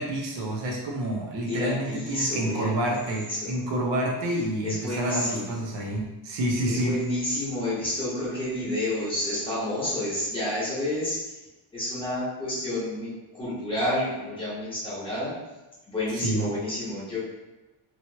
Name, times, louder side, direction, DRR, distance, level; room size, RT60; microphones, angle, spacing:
voice 1, 0.0-7.0 16.1-16.5, right 1 dB, 60° right, -1 dB, 0.8 m, -28 dB
voice 2, 1.5-2.8 3.3-3.6 4.6-5.8 6.7-11.2 11.7-15.3 15.9-17.2, left 1 dB, 10° left, -10 dB, 1.2 m, -30 dB
3.1 x 2.9 x 2.8 m, 1.1 s
cardioid pair, 180°, 50 cm